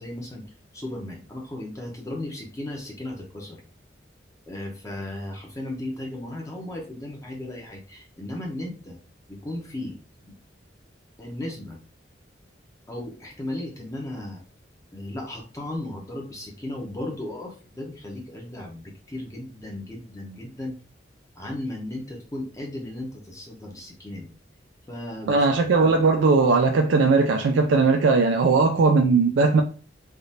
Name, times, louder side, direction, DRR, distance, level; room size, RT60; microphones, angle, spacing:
voice 1, 0.0-3.6 4.5-9.0 9.3-10.0 10.2-10.3 11.2-11.8 12.9-14.4 14.9-20.8 21.4-24.3 24.9-25.5 25.8-25.9, left 1 dB, 15° left, 0.7 m, -35 dB
voice 2, 25.3-29.6, right 4 dB, 80° right, 0.4 m, -19 dB
3.4 x 2.5 x 2.7 m
head